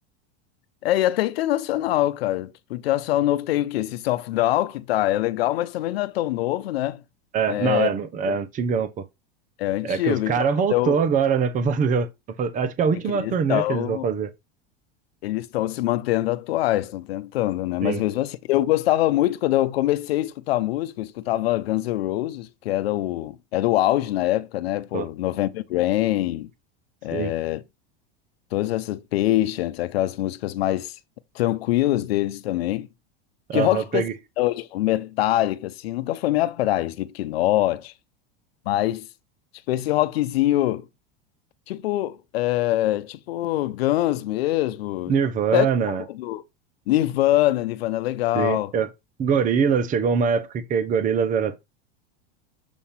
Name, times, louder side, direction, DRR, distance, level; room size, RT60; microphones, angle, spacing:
voice 1, 0.8-7.0 7.5-7.9 8.3-8.4 9.6-11.0 13.1-14.1 15.2-26.5 27.0-27.6 28.5-30.9 31.3-32.9 33.5-34.0 34.4-37.9 38.7-39.1 39.7-40.9 41.7-45.1 45.5-45.7 46.1-46.4 46.9-48.7, left 15 dB, 85° left, 0.7 m, -24 dB
voice 2, 7.3-9.0 9.8-12.1 12.4-14.3 17.8-18.0 24.9-25.1 27.1-27.3 33.5-34.1 45.1-46.0 48.3-48.9 49.2-51.6, right 6 dB, 25° right, 0.8 m, -23 dB
7.1 x 2.8 x 5.7 m
supercardioid pair, 130°, 30 cm